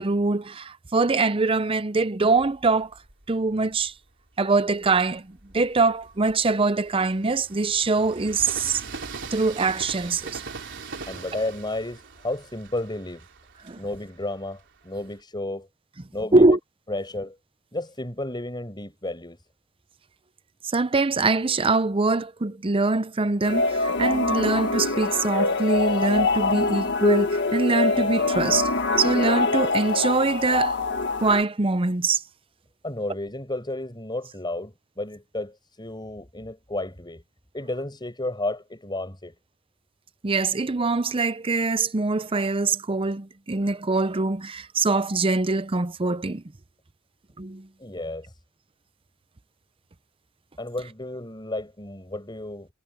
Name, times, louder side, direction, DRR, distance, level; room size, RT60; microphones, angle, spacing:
voice 1, 0.0-2.9 3.3-3.9 4.4-8.8 9.3-10.4 13.6-13.8 16.3-16.6 20.7-28.7 29.0-30.8 31.2-32.2 40.2-46.4 47.4-47.7, right 3 dB, 25° right, 0.6 m, -23 dB
Train, 2.3-4.0 4.6-15.2, right 4 dB, 55° right, 3.7 m, -41 dB
voice 2, 11.1-13.2 13.8-15.7 16.1-16.5 16.9-17.4 17.7-19.4 32.8-37.2 37.5-39.3 47.8-48.3 50.6-52.7, left 2 dB, 20° left, 6.6 m, -32 dB
sound 1, 23.4-31.4, left 3 dB, 55° left, 1.6 m, -24 dB
head